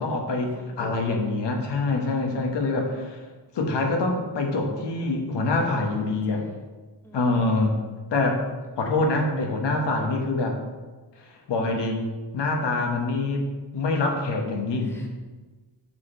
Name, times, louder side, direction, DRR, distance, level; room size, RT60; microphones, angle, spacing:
voice 1, 0.0-3.2 3.5-6.4 7.1-7.8 8.1-8.5 8.8-10.6 11.5-12.0 12.3-15.0, left 2 dB, 75° left, 2 dB, 1.4 m, -25 dB
voice 2, 0.5-1.1 2.2-3.0 5.5-6.6 7.0-7.6 14.7-15.1, equal, 5° left, 0 dB, 1.0 m, -49 dB
6.4 x 6.1 x 4.2 m, 1.3 s
wide cardioid pair, 130°, 42 cm